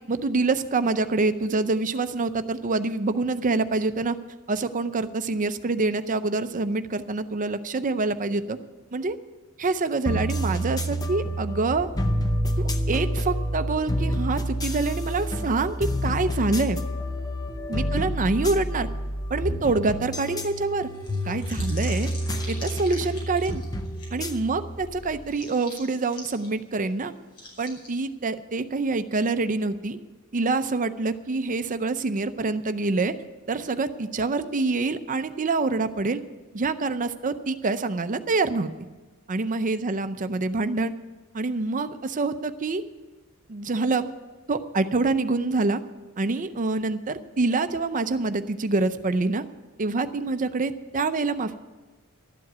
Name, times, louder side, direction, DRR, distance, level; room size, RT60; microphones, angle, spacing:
voice 1, 0.1-4.2 4.5-8.6 8.9-9.2 9.6-11.9 12.6-16.8 17.7-18.9 19.3-20.9 21.3-22.1 22.5-23.6 24.1-27.1 27.6-30.0 30.3-33.1 33.5-36.2 36.5-38.7 39.3-40.9 41.3-42.8 43.5-44.1 44.5-45.8 46.2-49.4 49.8-51.6, right 3 dB, 35° right, 11 dB, 0.6 m, -26 dB
sound 1, 10.1-25.3, equal, 15° left, 0.7 m, -29 dB
sound 2, 20.9-24.1 24.3-24.4 25.3-26.5 26.8-26.9 27.3-27.9, left 2 dB, 85° left, 5.2 m, -42 dB
12.5 x 7.6 x 9.2 m, 1.2 s
head